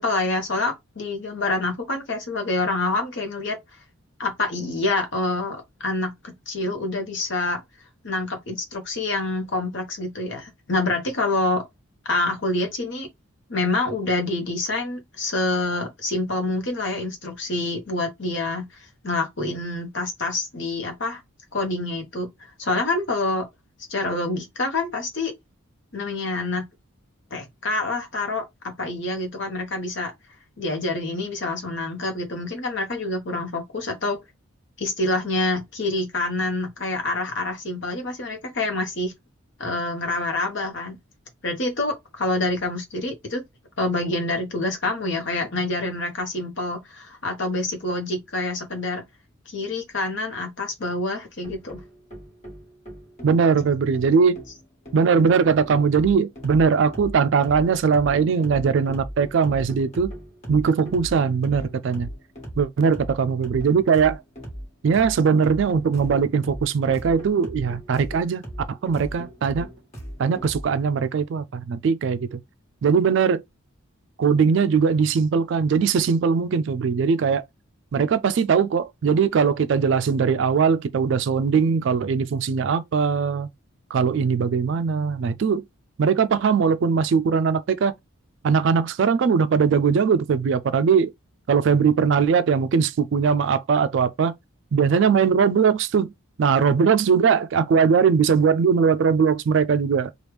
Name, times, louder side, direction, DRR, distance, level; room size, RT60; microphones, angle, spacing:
voice 1, 0.0-3.6 4.2-7.6 8.0-11.6 12.0-13.1 13.5-21.2 21.5-22.3 22.6-23.5 23.9-25.3 25.9-26.7 27.3-30.1 30.6-34.2 34.8-39.1 39.6-41.0 41.4-43.4 43.8-49.0 49.5-51.8, left 2 dB, 55° left, 1.0 m, -27 dB
sound 1, 51.4-70.7, equal, 30° left, 1.5 m, -39 dB
voice 2, 53.2-54.4 54.9-60.1 60.5-62.1 62.6-64.2 64.8-68.4 68.7-69.7 70.2-72.4 72.8-73.4 74.2-77.4 77.9-83.5 83.9-85.6 86.0-87.9 88.4-91.1 91.5-94.3 94.7-96.1 96.4-100.1, right 6 dB, 60° right, 0.3 m, -20 dB
3.1 x 2.4 x 3.3 m
head